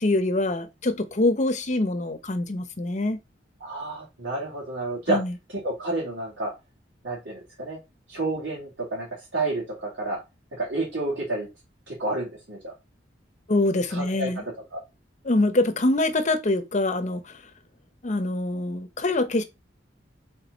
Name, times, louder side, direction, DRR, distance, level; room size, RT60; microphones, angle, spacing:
voice 1, 0.0-3.2 5.1-5.3 13.5-14.4 15.3-17.3 18.0-19.4, left 2 dB, 40° left, 0.8 m, -24 dB
voice 2, 3.6-5.2 5.5-6.5 7.0-7.8 8.1-10.2 10.5-11.5 11.9-12.7 13.9-14.8, right 2 dB, 80° right, 2.8 m, -30 dB
6.1 x 3.9 x 3.9 m
head